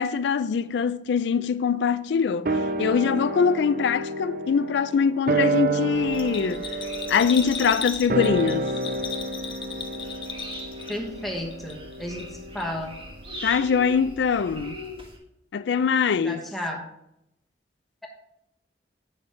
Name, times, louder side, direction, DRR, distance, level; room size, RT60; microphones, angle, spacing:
voice 1, 0.0-6.7 7.1-8.7 13.4-14.8 15.5-16.5, left 6 dB, 80° left, 0.4 m, -23 dB
sound 1, 2.5-13.1 13.3-13.4, right 2 dB, 50° right, 0.5 m, -30 dB
sound 2, 5.9-15.2, equal, 30° right, 1.5 m, -42 dB
Bell, 6.1-11.2 11.5-12.3 12.6-12.7, left 6 dB, 30° left, 0.7 m, -36 dB
voice 2, 10.9-12.9 16.2-16.8, left 1 dB, ahead, 1.1 m, -33 dB
8.5 x 6.2 x 3.1 m
head